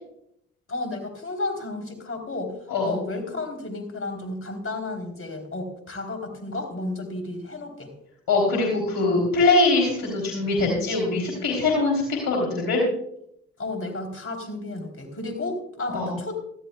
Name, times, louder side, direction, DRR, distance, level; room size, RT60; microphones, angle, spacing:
voice 1, 0.7-2.5 2.8-7.9 13.6-16.3, left 2 dB, 40° left, 5 dB, 3.6 m, -32 dB
voice 2, 8.3-12.8 15.9-16.1, left 3 dB, 70° left, -1 dB, 3.4 m, -22 dB
18.5 x 13.5 x 2.3 m, 0.73 s
hypercardioid pair, 45°, 35 cm